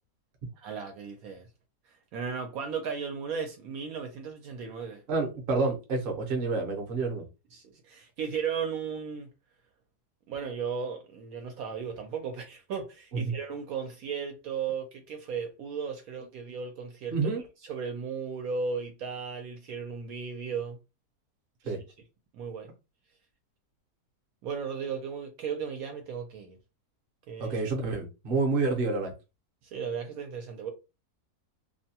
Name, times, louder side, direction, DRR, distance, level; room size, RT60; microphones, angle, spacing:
voice 1, 0.6-1.5 2.1-5.0 7.5-9.3 10.3-17.3 17.6-20.8 21.6-21.7 22.3-22.7 24.4-26.6 27.3-27.6 29.6-30.7, right 6 dB, 70° right, 1.0 m, -35 dB
voice 2, 5.1-7.3 13.1-13.3 17.1-17.4 21.6-21.8 27.4-29.1, right 3 dB, 45° right, 0.8 m, -28 dB
2.7 x 2.2 x 2.8 m
omnidirectional pair, 1.7 m